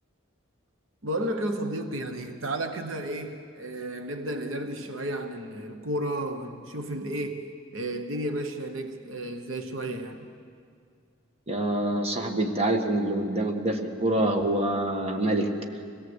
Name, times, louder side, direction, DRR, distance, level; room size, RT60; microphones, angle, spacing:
voice 1, 1.0-10.3, right 1 dB, 70° right, 6 dB, 1.2 m, -32 dB
voice 2, 11.5-15.5, right 1 dB, 30° right, 3 dB, 1.7 m, -26 dB
24.5 x 17.5 x 8.1 m, 2.2 s
head